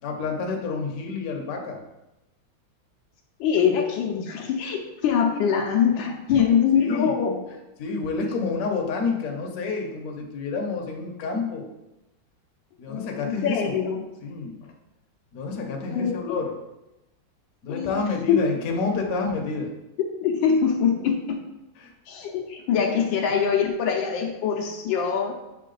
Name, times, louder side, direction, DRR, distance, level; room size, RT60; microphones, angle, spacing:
voice 1, 0.0-1.8 6.3-6.5 6.8-7.2 7.8-11.7 12.8-13.8 14.2-14.6 15.3-16.5 17.6-19.7 21.8-21.9, left 4 dB, 55° left, 1 dB, 1.1 m, -29 dB
voice 2, 3.4-7.4 12.9-14.0 15.9-16.4 17.7-18.5 20.0-21.4 22.1-25.3, left 7 dB, 75° left, 2 dB, 1.3 m, -23 dB
7.4 x 3.6 x 3.8 m, 0.96 s
omnidirectional pair, 2.2 m